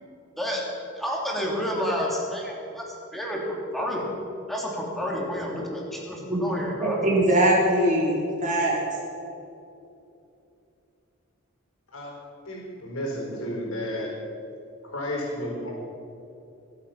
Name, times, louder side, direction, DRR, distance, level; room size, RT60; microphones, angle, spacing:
voice 1, 0.9-3.4 3.7-4.0 4.5-7.2, equal, ahead, -3 dB, 3.0 m, -30 dB
voice 2, 6.8-8.8, right 1 dB, 40° right, -4 dB, 3.4 m, -22 dB
voice 3, 12.4-14.1 14.8-15.7, equal, 75° left, -2 dB, 4.6 m, -32 dB
24.0 x 8.5 x 5.9 m, 2.7 s
head